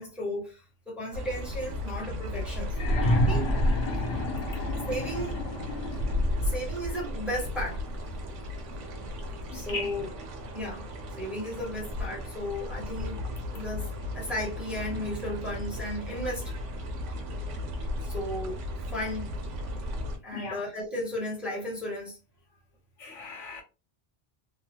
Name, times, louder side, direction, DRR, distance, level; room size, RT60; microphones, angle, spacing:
voice 1, 0.0-3.5 4.1-4.2 4.9-5.4 6.4-7.8 9.5-10.1 10.5-10.9 11.2-13.2 13.5-13.9 14.1-16.5 18.0-18.6 18.9-19.4 20.2-22.2, equal, ahead, 0.9 m, -35 dB
sound 1, 1.1-20.2, left 1 dB, 80° right, 1.0 m, -34 dB
sound 2, 2.7-6.5 7.7-7.8, equal, 65° left, 1.0 m, -29 dB
voice 2, 9.5-10.0 20.3-20.7 23.0-23.6, left 4 dB, 85° left, 1.2 m, -38 dB
3.1 x 2.0 x 2.7 m
omnidirectional pair, 1.2 m